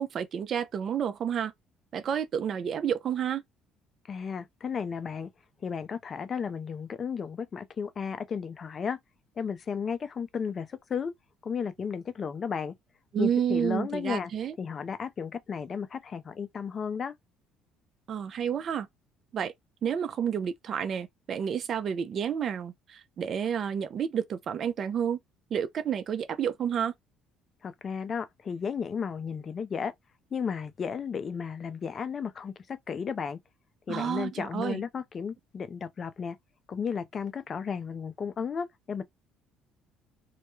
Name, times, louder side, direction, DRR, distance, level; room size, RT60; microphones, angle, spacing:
voice 1, 0.0-1.5 1.9-3.4 13.1-14.5 18.1-18.9 19.3-19.5 19.8-25.2 25.5-26.9 33.9-34.8, right 8 dB, 50° right, 0.3 m, -30 dB
voice 2, 4.1-5.3 5.6-9.0 9.4-11.1 11.4-12.7 13.2-14.3 14.6-17.1 27.6-29.9 30.3-33.4 33.9-36.4 36.7-39.0, left 6 dB, 40° left, 0.4 m, -34 dB
2.2 x 2.1 x 2.9 m
cardioid pair, 100°, 0 cm